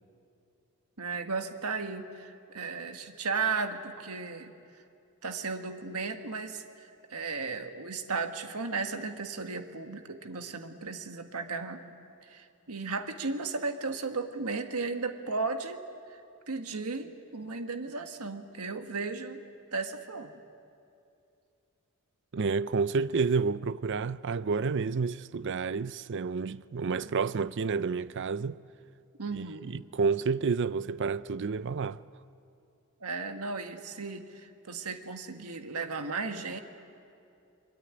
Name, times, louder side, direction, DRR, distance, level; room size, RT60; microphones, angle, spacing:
voice 1, 1.0-4.5 5.2-11.8 12.2-15.8 16.1-16.2 16.5-19.4 19.7-20.3 26.9-27.1 29.2-29.8 33.0-36.6, right 4 dB, 85° right, 1.6 m, -35 dB
voice 2, 22.3-28.6 29.3-32.0, right 5 dB, 55° right, 0.5 m, -30 dB
23.0 x 22.5 x 9.7 m
head